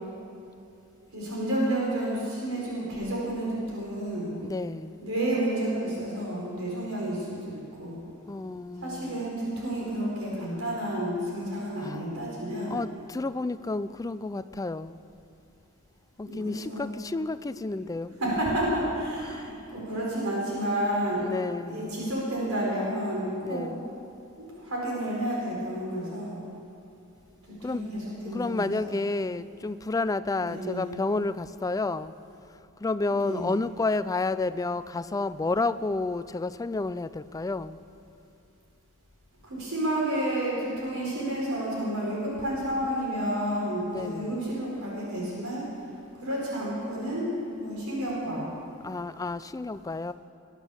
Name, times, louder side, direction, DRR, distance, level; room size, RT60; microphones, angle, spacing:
voice 1, 1.1-4.4 5.0-8.0 8.8-12.8 16.2-16.9 18.2-23.6 24.4-26.4 27.5-28.9 30.4-30.9 33.1-33.5 39.4-45.6 46.2-47.3 47.6-48.5, right 1 dB, 75° right, -5 dB, 4.4 m, -30 dB
voice 2, 4.4-5.0 8.3-9.3 11.8-12.0 12.7-15.0 16.2-18.1 19.3-19.5 21.2-22.1 23.4-23.9 27.6-27.8 28.3-32.1 32.8-37.8 43.9-44.4 48.8-50.1, left 3 dB, 15° left, 14 dB, 0.3 m, -31 dB
20.0 x 9.1 x 7.0 m, 2.7 s
head